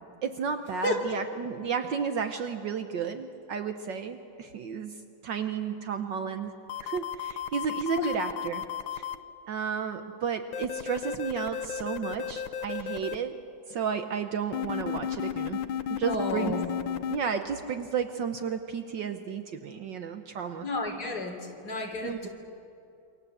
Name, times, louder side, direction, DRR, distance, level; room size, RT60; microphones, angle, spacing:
voice 1, 0.2-5.0 5.2-6.5 6.8-8.6 8.9-9.0 9.5-13.4 13.7-15.6 15.9-16.5 17.1-20.7 22.0-22.3, right 6 dB, 65° right, 7 dB, 1.6 m, -32 dB
voice 2, 0.8-1.2 8.0-8.1 16.1-16.7 20.6-21.4 21.6-22.3, left 2 dB, 50° left, 2 dB, 3.8 m, -31 dB
sound 1, 6.7-9.2 10.5-13.2 14.5-17.2, left 9 dB, 75° left, 1.6 m, -33 dB
28.0 x 25.0 x 8.0 m, 2.7 s
omnidirectional pair, 2.2 m